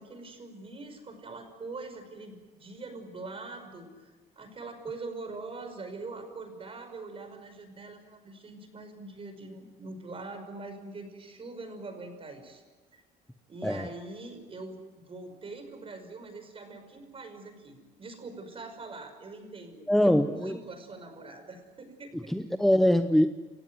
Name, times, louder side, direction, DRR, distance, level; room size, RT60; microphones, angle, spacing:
voice 1, 0.0-12.6 12.9-13.0 13.5-14.8 15.1-22.3, right 3 dB, 35° right, 6 dB, 5.6 m, -43 dB
voice 2, 19.9-20.6 22.3-23.3, equal, ahead, 8 dB, 0.9 m, -23 dB
29.0 x 15.5 x 9.5 m, 1.3 s
cardioid pair, 110°, 17 cm